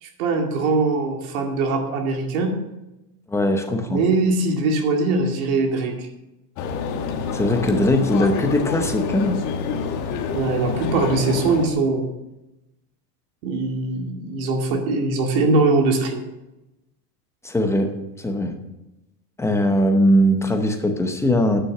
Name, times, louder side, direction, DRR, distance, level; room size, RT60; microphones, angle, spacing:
voice 1, 0.0-2.5 3.9-6.1 10.3-12.1 13.4-16.2, right 3 dB, 60° right, 2 dB, 2.4 m, -21 dB
voice 2, 3.3-4.0 7.3-9.4 17.4-18.5 19.4-21.6, equal, 5° left, 5 dB, 0.8 m, -20 dB
sound 1, 6.6-11.7, left 5 dB, 40° left, 1.4 m, -27 dB
9.8 x 6.2 x 7.7 m, 0.96 s
supercardioid pair, 145°, 48 cm